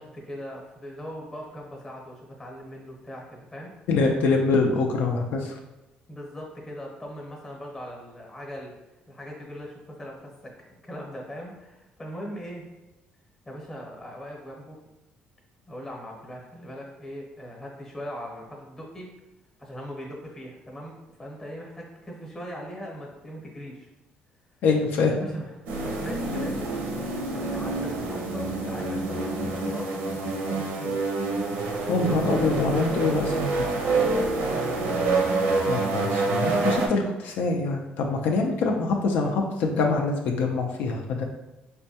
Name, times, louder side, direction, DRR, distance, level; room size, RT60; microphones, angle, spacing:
voice 1, 0.0-3.7 6.1-8.7 9.1-12.6 13.4-14.8 15.7-19.1 19.6-20.9 21.2-23.9 25.2-25.5 25.8-31.1 33.9-35.1 38.6-38.8, equal, 15° left, -1 dB, 0.8 m, -40 dB
voice 2, 3.9-5.5 24.6-25.3 31.9-33.7 35.6-41.2, left 3 dB, 75° left, 1 dB, 0.4 m, -25 dB
sound 1, 25.7-36.9, right 3 dB, 85° right, 0.7 m, -27 dB
4.2 x 2.2 x 2.7 m, 1.0 s
cardioid pair, 130°, 3 cm